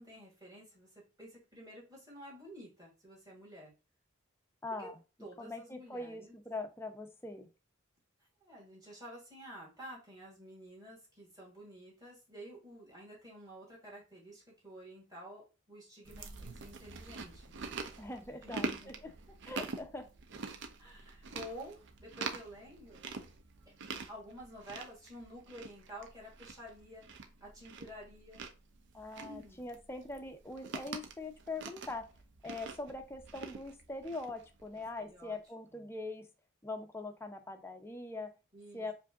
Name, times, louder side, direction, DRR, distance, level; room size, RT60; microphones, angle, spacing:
voice 1, 0.0-3.7 4.8-4.9 5.2-6.4 8.4-17.5 18.2-19.1 20.8-23.0 23.9-27.1 27.4-28.4 29.2-29.7 34.7-35.4 35.7-35.9 38.5-38.9, equal, 20° right, -4 dB, 2.2 m, -51 dB
voice 2, 4.6-5.0 5.4-7.5 18.0-18.9 19.4-20.1 28.9-32.1 32.4-36.3 36.6-38.3 38.7-38.9, left 2 dB, 10° left, 4 dB, 0.5 m, -42 dB
Chewing mastication, 16.1-35.0, right 4 dB, 60° right, 0.5 m, -45 dB
4.9 x 2.6 x 2.4 m, 0.31 s
head